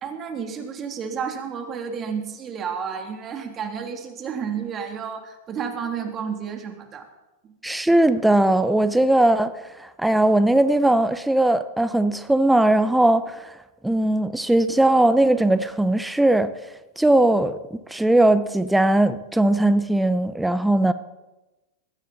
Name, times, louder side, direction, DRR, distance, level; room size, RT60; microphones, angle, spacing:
voice 1, 0.0-7.1 7.4-7.5, right 6 dB, 30° right, 3.2 m, -31 dB
voice 2, 7.6-13.5 13.8-16.5 17.0-17.6 17.9-20.9, right 1 dB, 5° right, 0.9 m, -19 dB
20.5 x 16.0 x 4.3 m
hypercardioid pair, 115°, 0 cm